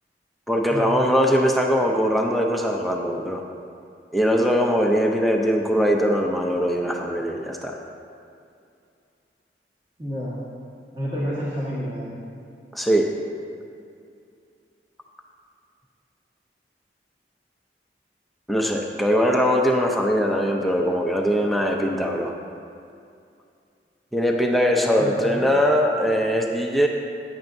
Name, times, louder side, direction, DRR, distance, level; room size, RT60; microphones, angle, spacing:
voice 1, 0.5-3.4 4.1-7.8 12.7-13.1 18.5-22.3 24.1-26.9, equal, ahead, 0 dB, 0.5 m, -21 dB
voice 2, 10.0-10.3 10.9-12.1 25.0-25.5, equal, 25° right, -9 dB, 1.7 m, -29 dB
14.5 x 9.5 x 2.6 m, 2.4 s
head